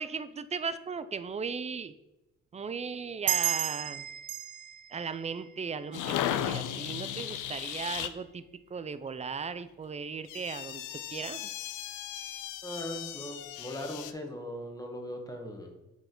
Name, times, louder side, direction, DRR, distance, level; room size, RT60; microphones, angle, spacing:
voice 1, 0.0-1.9 2.5-4.1 4.9-8.4 8.7-10.8 11.1-11.5, right 5 dB, 25° right, 13 dB, 0.4 m, -37 dB
sound 1, 3.3-6.4, right 13 dB, 85° right, 0.5 m, -34 dB
sound 2, 5.9-8.1 10.2-14.1, left 11 dB, 85° left, 0.5 m, -36 dB
voice 2, 12.6-15.8, left 1 dB, 10° left, 2 dB, 1.2 m, -39 dB
8.1 x 4.2 x 3.8 m, 0.99 s
cardioid pair, 90°, 30 cm